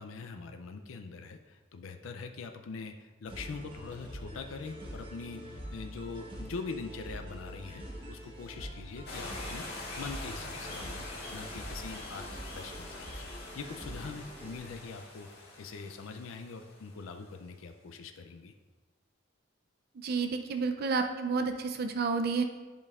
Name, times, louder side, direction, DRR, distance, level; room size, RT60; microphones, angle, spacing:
voice 1, 0.0-12.3 12.5-18.5, left 4 dB, 85° left, 6 dB, 0.4 m, -43 dB
sound 1, 3.3-15.1, equal, 25° right, 1.2 m, -45 dB
sound 2, 9.1-17.4, left 2 dB, 55° left, 1.7 m, -44 dB
voice 2, 20.0-22.4, right 4 dB, 50° right, 7 dB, 0.4 m, -30 dB
10.5 x 5.2 x 2.4 m, 1.3 s
head